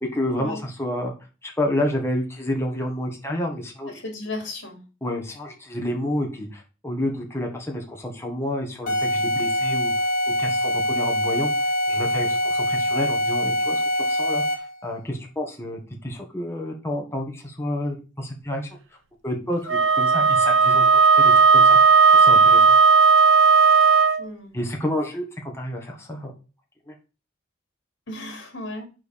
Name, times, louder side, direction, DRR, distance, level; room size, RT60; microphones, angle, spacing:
voice 1, 0.0-1.1 1.4-4.0 5.0-10.1 10.4-18.7 19.2-21.8 22.1-22.8 24.5-26.3 26.9-27.0, left 1 dB, 15° left, 0 dB, 1.7 m, -29 dB
voice 2, 4.0-4.8 24.2-24.6 28.1-28.9, left 2 dB, 65° left, 3 dB, 3.3 m, -34 dB
sound 1, 8.9-14.8, equal, 45° left, 2.5 m, -24 dB
Wind instrument woodwind instrument, 19.7-24.2, right 5 dB, 75° right, 0.9 m, -15 dB
6.3 x 4.8 x 6.6 m, 0.33 s
head